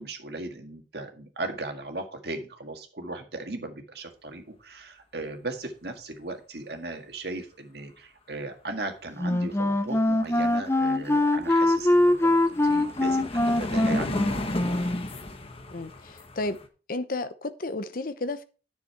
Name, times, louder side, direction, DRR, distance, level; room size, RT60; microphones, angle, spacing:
voice 1, 0.0-14.9, right 2 dB, 60° right, 4 dB, 1.9 m, -37 dB
Wind instrument woodwind instrument, 9.2-15.1, left 1 dB, 15° left, 0.6 m, -23 dB
sound 1, 10.6-10.7 10.9-16.7, left 1 dB, 35° left, 1.1 m, -34 dB
voice 2, 15.7-16.6 16.9-18.4, left 2 dB, 50° left, 12 dB, 0.8 m, -32 dB
9.9 x 6.7 x 4.6 m, 0.36 s
head